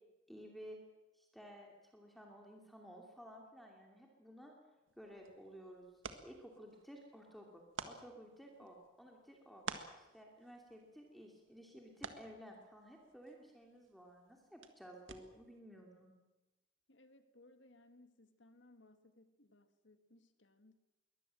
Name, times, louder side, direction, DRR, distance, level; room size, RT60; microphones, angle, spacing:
voice 1, 0.3-0.8 1.1-4.5 5.0-9.6 10.0-16.1, equal, ahead, 1 dB, 2.7 m, -55 dB
sound 1, 4.9-15.6, right 5 dB, 75° right, 1.7 m, -53 dB
voice 2, 16.9-20.7, left 2 dB, 65° left, 9 dB, 1.9 m, -64 dB
22.5 x 19.0 x 7.7 m, 1.1 s
head